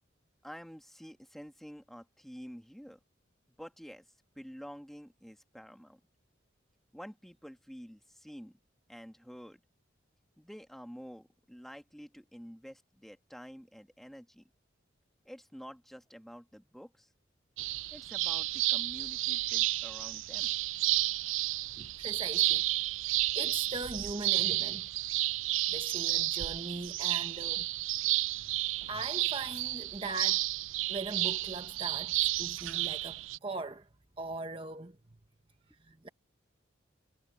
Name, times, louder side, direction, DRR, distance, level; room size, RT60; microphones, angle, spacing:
voice 1, 0.4-3.0 3.6-6.0 6.9-8.6 8.9-9.6 10.4-14.4 15.3-17.1 17.9-20.5, equal, ahead, 1.7 m, -49 dB
sound 1, 17.6-33.4, right 17 dB, 80° right, 0.4 m, -31 dB
voice 2, 21.8-22.7 23.0-24.9 25.7-27.7 28.9-30.5 30.9-33.9 34.2-35.0 35.8-36.1, right 3 dB, 25° right, 1.1 m, -40 dB
head